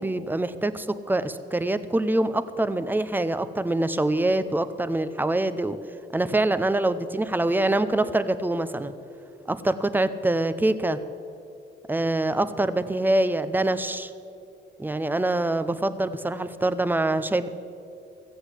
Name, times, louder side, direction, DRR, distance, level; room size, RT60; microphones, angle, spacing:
voice 1, 0.0-5.8 6.1-8.9 9.5-11.0 11.9-14.1 14.8-17.5, right 2 dB, 10° right, 12 dB, 0.7 m, -25 dB
15.0 x 8.0 x 8.2 m, 2.6 s
cardioid pair, 90°, 20 cm